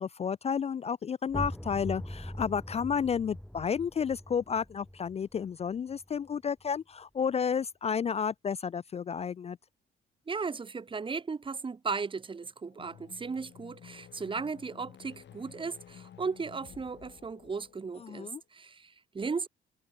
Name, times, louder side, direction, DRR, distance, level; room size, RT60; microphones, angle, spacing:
voice 1, 0.0-9.6 18.0-18.4, left 7 dB, 30° left, 0.4 m, -31 dB
sound 1, 1.3-6.8, equal, 5° left, 3.2 m, -42 dB
voice 2, 10.3-19.5, right 5 dB, 25° right, 1.0 m, -36 dB
sound 2, 12.7-18.3, left 10 dB, 65° left, 4.5 m, -53 dB
cardioid pair, 90°, 20 cm